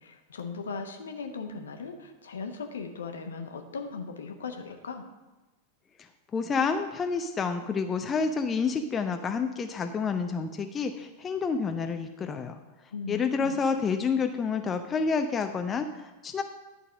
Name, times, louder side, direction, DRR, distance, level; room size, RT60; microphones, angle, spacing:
voice 1, 0.0-5.0 12.9-13.6, left 5 dB, 65° left, 5 dB, 0.9 m, -38 dB
voice 2, 6.3-12.6 13.1-16.4, left 5 dB, 20° left, 6 dB, 0.5 m, -29 dB
11.0 x 4.1 x 6.2 m, 1.2 s
figure-of-eight pair, 90°, 0 cm